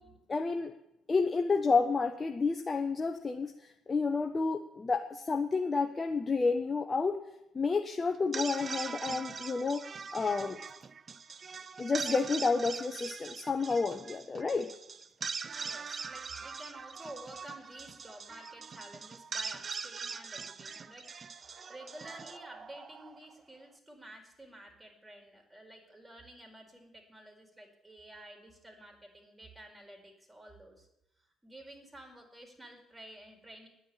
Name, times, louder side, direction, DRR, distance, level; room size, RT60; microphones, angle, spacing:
voice 1, 0.3-0.7 1.1-7.2 7.5-9.8 10.1-10.6 11.8-14.7, left 4 dB, 35° left, 5 dB, 1.0 m, -30 dB
sound 1, 8.1-23.4, right 5 dB, 40° right, 0.6 m, -42 dB
voice 2, 15.5-21.1 21.4-30.9 31.4-33.7, right 1 dB, 15° right, 2 dB, 4.7 m, -51 dB
10.0 x 9.3 x 8.7 m, 0.86 s
hypercardioid pair, 50°, 0 cm